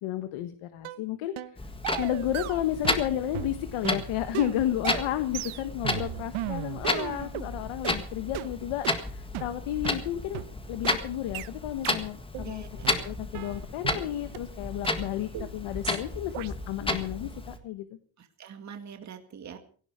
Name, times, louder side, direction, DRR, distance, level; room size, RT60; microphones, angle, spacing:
voice 1, 0.0-1.3 2.0-10.4 10.7-12.6 13.0-17.9, left 12 dB, 85° left, 10 dB, 1.5 m, -32 dB
sound 1, 0.8-1.0 1.4-1.6 1.8-3.1 3.3-7.5 7.8-8.0 8.3-8.5 8.8-9.0 9.3-9.5 9.8-10.0 10.3-10.5 10.8-11.0 11.3-11.5 11.8-12.0 12.3-12.5 12.8-14.0 14.3-14.4 14.8-14.9 15.3-15.5 15.8-16.0 16.3-16.5, right 16 dB, 85° right, 1.1 m, -36 dB
Clock, 1.6-17.6, left 2 dB, 10° left, 1.6 m, -33 dB
voice 2, 12.4-12.9 18.2-19.6, right 7 dB, 35° right, 6 dB, 2.1 m, -44 dB
17.5 x 16.5 x 4.9 m, 0.43 s
cardioid pair, 165°, 48 cm